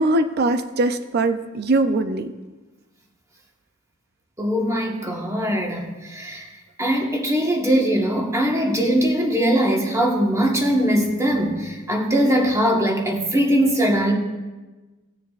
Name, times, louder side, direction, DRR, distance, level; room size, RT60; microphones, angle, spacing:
voice 1, 0.0-2.3, right 2 dB, 50° right, 9 dB, 0.5 m, -21 dB
voice 2, 4.4-6.5 6.8-14.1, equal, 15° right, 0 dB, 1.3 m, -21 dB
18.0 x 6.9 x 2.5 m, 1.2 s
head